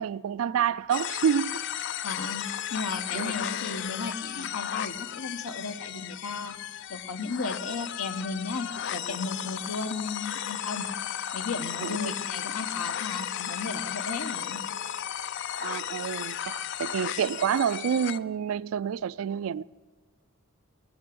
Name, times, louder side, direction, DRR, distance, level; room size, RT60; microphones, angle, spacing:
voice 1, 0.0-1.6 3.1-3.3 9.1-9.2 11.8-12.1 15.6-19.6, right 8 dB, 65° right, 0.3 m, -28 dB
sound 1, 0.9-18.2, left 10 dB, 55° left, 0.4 m, -35 dB
voice 2, 2.0-6.5 6.9-10.9 11.3-14.6, left 4 dB, 85° left, 1.0 m, -35 dB
19.5 x 6.8 x 6.2 m
head